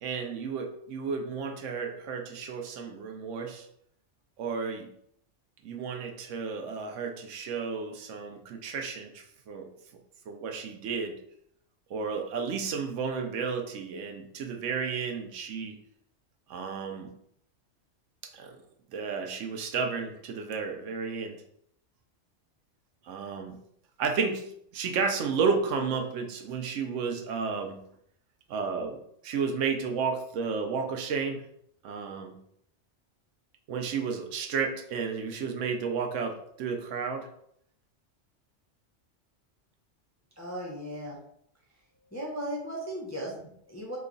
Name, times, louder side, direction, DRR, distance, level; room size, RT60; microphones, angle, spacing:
voice 1, 0.0-3.7 4.4-4.9 5.6-9.7 10.3-11.2 11.9-15.8 16.5-17.1 18.3-18.6 18.9-21.4 23.0-23.6 24.0-24.5 24.7-27.8 28.5-31.4 31.8-32.4 33.7-37.3, right 5 dB, 80° right, 4 dB, 0.9 m, -32 dB
voice 2, 40.4-41.2 42.1-44.0, equal, 25° left, -3 dB, 0.3 m, -36 dB
3.0 x 2.3 x 3.7 m, 0.69 s
omnidirectional pair, 1.3 m